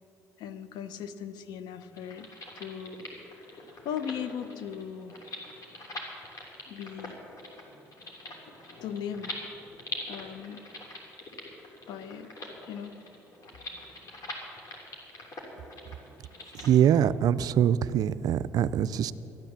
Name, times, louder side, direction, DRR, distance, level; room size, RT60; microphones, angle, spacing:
voice 1, 0.4-3.1 3.4-5.2 6.7-7.2 8.8-9.5 10.1-10.7 11.9-12.3 12.6-12.9, left 8 dB, 80° left, 12 dB, 0.7 m, -38 dB
sound 1, 1.9-16.7, left 2 dB, 55° left, 3.0 m, -43 dB
voice 2, 16.5-19.1, right 9 dB, 65° right, 16 dB, 0.4 m, -23 dB
13.0 x 9.8 x 7.4 m, 3.0 s
supercardioid pair, 70°, 7 cm